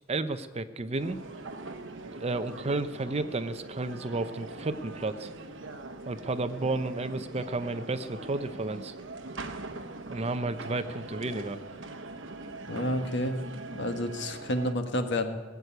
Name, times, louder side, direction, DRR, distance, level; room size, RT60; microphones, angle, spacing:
voice 1, 0.1-1.2 2.1-5.3 6.0-8.9 10.1-11.6, right 2 dB, 30° right, 11 dB, 0.7 m, -32 dB
sound 1, 1.0-14.7, right 2 dB, 70° right, 1.0 m, -42 dB
voice 2, 12.7-13.4 13.7-15.4, left 1 dB, 65° left, 6 dB, 1.5 m, -30 dB
18.0 x 8.2 x 9.1 m, 1.4 s
head